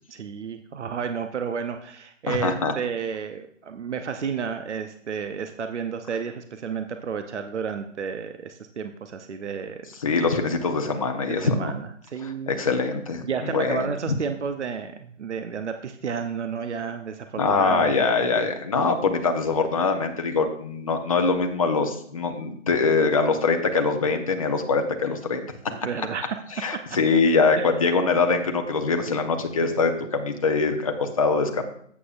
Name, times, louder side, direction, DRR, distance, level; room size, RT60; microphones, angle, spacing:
voice 1, 0.1-9.8 11.4-12.5 13.2-17.9 25.8-26.4 27.6-27.7, right 6 dB, 60° right, 7 dB, 0.8 m, -31 dB
voice 2, 2.3-2.7 10.0-11.7 12.2-14.2 17.3-25.4 26.6-31.6, left 4 dB, 25° left, 5 dB, 0.8 m, -23 dB
11.0 x 8.4 x 2.4 m, 0.65 s
figure-of-eight pair, 150°, 39 cm